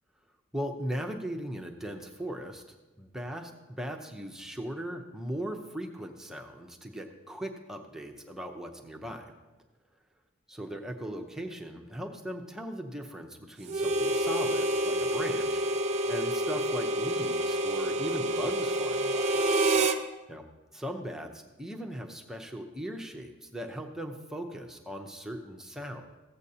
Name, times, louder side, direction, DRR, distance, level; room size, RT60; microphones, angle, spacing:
voice 1, 0.5-2.6 3.0-9.3 10.5-15.6 16.1-19.4 20.3-20.4 20.7-26.2, equal, 5° right, 2 dB, 0.7 m, -38 dB
Harmonica, 13.7-20.0, right 1 dB, 35° right, 0.6 m, -28 dB
15.5 x 8.0 x 2.8 m, 1.1 s
head